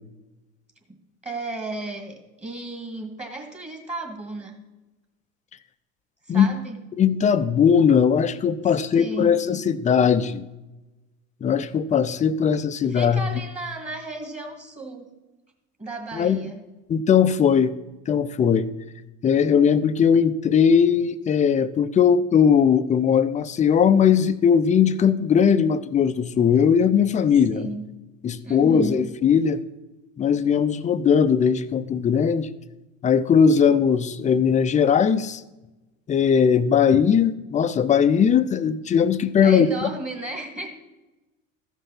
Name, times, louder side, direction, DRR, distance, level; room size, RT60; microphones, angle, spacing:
voice 1, 1.2-4.6 6.2-6.8 8.9-9.3 12.9-15.1 15.8-16.6 27.5-27.9 28.4-29.0 39.4-40.7, right 2 dB, 15° right, 3 dB, 1.8 m, -34 dB
voice 2, 7.0-10.4 11.4-13.2 16.1-16.5 16.9-17.7 18.1-18.7 19.2-27.7 28.2-29.6 30.2-32.5 33.0-35.4 36.1-39.9, left 7 dB, 20° left, 13 dB, 0.5 m, -19 dB
13.5 x 5.5 x 5.7 m, 1.1 s
hypercardioid pair, 95°, 39 cm